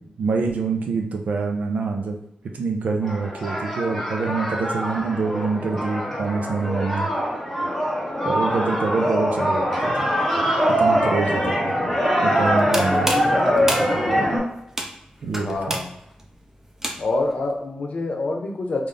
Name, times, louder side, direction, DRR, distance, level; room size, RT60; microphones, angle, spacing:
voice 1, 0.2-2.2 2.5-7.1 8.2-10.1 10.8-11.7 12.2-13.1 15.2-15.8, right 4 dB, 80° right, 2 dB, 0.6 m, -25 dB
sound 1, 3.0-14.4, equal, 5° left, 1.5 m, -23 dB
sound 2, 12.5-17.3, right 1 dB, 15° right, 0.5 m, -31 dB
voice 2, 15.3-16.0 17.0-18.9, left 2 dB, 60° left, 2 dB, 0.7 m, -26 dB
3.9 x 2.5 x 3.3 m, 0.80 s
wide cardioid pair, 115°, 3 cm